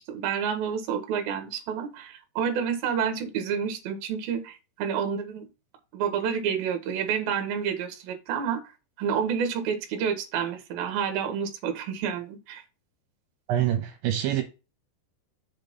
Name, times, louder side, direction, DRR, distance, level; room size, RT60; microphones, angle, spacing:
voice 1, 0.0-5.5 5.9-8.6 9.0-12.6, right 7 dB, 60° right, 2.7 m, -29 dB
voice 2, 13.5-14.4, right 11 dB, 75° right, 3.2 m, -25 dB
6.9 x 4.4 x 5.3 m
omnidirectional pair, 5.6 m